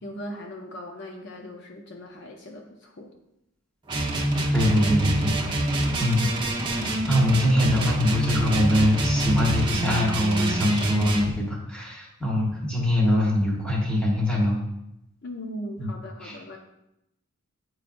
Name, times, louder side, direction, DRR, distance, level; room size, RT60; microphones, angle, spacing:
voice 1, 0.0-3.1 15.2-16.6, equal, 55° left, 2 dB, 0.6 m, -39 dB
sound 1, 3.9-11.3, right 1 dB, 20° right, 0.7 m, -26 dB
voice 2, 4.5-6.3 7.1-14.6 15.8-15.9 16.2-16.4, left 1 dB, 5° left, -3 dB, 1.2 m, -23 dB
8.5 x 4.7 x 2.5 m, 0.84 s
head